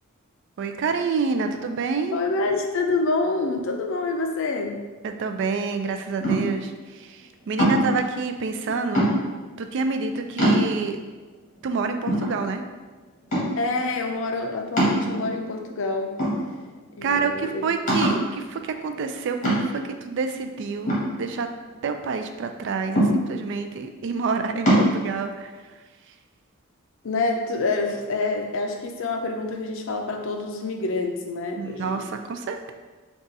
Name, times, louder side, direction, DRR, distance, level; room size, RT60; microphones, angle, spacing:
voice 1, 0.6-2.1 5.0-7.2 7.5-9.1 9.6-11.0 11.6-12.6 17.0-21.5 21.8-25.5 31.6-32.7, right 4 dB, 55° right, 6 dB, 0.3 m, -28 dB
voice 2, 2.1-4.9 8.7-9.3 13.6-16.2 17.0-17.7 27.0-32.1, left 3 dB, 60° left, 3 dB, 0.5 m, -27 dB
sound 1, 6.2-6.7 7.6-8.0 8.9-9.5 10.0-10.1 10.4-11.0 11.6-11.7 12.1-12.8 13.3-13.7 14.8-15.5 16.2-16.8 17.2-17.3 17.9-18.3 19.4-19.9 20.9-21.8 23.0-23.5 24.7-24.9, right 1 dB, 35° left, 1.4 m, -22 dB
3.9 x 2.4 x 3.9 m, 1.3 s
head